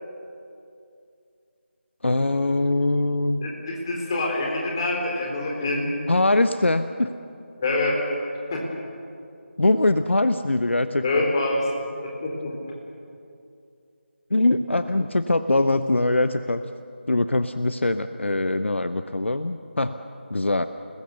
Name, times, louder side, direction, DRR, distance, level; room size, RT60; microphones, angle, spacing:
voice 1, 2.0-3.5 6.1-7.1 9.6-11.3 14.3-16.6 17.1-20.0 20.3-20.7, left 2 dB, 70° left, 11 dB, 0.9 m, -22 dB
voice 2, 3.4-5.9 7.6-8.0 8.5-8.6 11.0-11.7 12.0-12.5, left 2 dB, 20° left, -1 dB, 3.9 m, -25 dB
29.5 x 20.0 x 6.9 m, 2.5 s
figure-of-eight pair, 165°, 7 cm